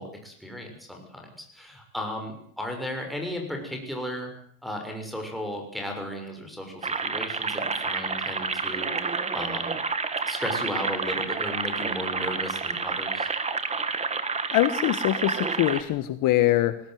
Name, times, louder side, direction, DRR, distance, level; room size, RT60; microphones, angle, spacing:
voice 1, 0.0-4.3 4.6-9.8 10.2-13.3, left 1 dB, ahead, 1 dB, 6.5 m, -35 dB
sound 1, 6.8-15.8, right 4 dB, 15° right, 1.9 m, -29 dB
voice 2, 14.5-16.8, left 15 dB, 50° left, 12 dB, 1.5 m, -23 dB
21.0 x 17.5 x 9.4 m, 0.63 s
cardioid pair, 155°, 40 cm